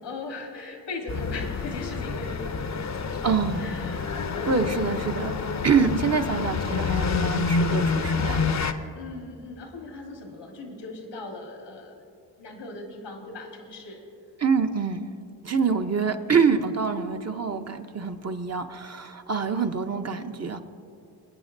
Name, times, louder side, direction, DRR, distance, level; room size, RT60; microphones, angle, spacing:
voice 1, 0.0-4.7 5.7-6.4 8.9-11.9 12.4-14.0 15.5-15.9, left 2 dB, 90° left, 2 dB, 1.6 m, -39 dB
sound 1, 1.1-8.7, left 4 dB, 40° left, 0.6 m, -28 dB
voice 2, 3.2-3.6 4.5-8.5 14.4-15.1 15.4-20.6, right 5 dB, 35° right, 6 dB, 0.8 m, -26 dB
21.0 x 8.9 x 2.7 m, 2.6 s
cardioid pair, 50°, 42 cm